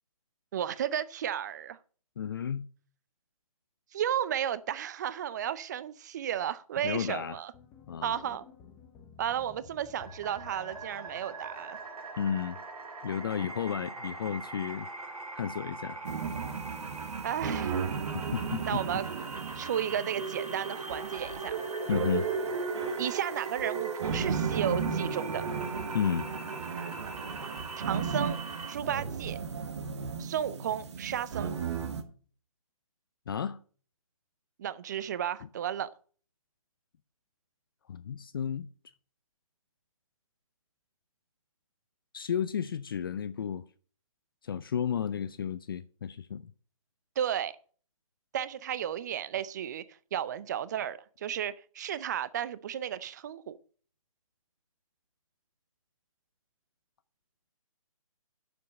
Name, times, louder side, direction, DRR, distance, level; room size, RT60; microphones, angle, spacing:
voice 1, 0.5-1.8 3.9-7.5 8.0-8.4 9.2-11.8 17.2-17.8 18.7-19.1 19.5-21.6 23.0-25.5 27.9-28.4 28.7-29.4 30.2-31.5 34.6-35.9 47.2-47.5 48.3-49.8 50.1-53.6, right 10 dB, 30° right, 0.6 m, -33 dB
voice 2, 2.2-2.7 6.8-7.4 7.9-8.4 12.2-12.6 13.0-16.0 18.1-18.8 21.9-22.3 25.9-26.3 33.3-33.6 37.9-38.7 42.1-43.6 44.4-46.5, left 8 dB, 40° left, 0.5 m, -33 dB
sound 1, 7.5-11.8, left 6 dB, 10° left, 0.8 m, -54 dB
sound 2, 10.0-28.7, right 3 dB, 85° right, 3.0 m, -42 dB
sound 3, 16.0-32.0, right 6 dB, 50° right, 1.4 m, -34 dB
10.0 x 7.1 x 5.3 m
hypercardioid pair, 155°, 19 cm